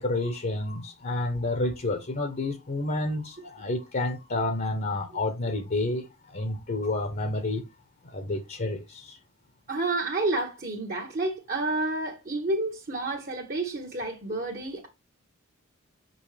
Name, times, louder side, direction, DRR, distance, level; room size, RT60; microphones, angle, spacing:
voice 1, 0.0-7.6 8.0-9.2, left 2 dB, 45° left, 0.9 m, -30 dB
voice 2, 9.7-14.9, right 2 dB, 45° right, 1.2 m, -30 dB
6.3 x 5.3 x 3.3 m
head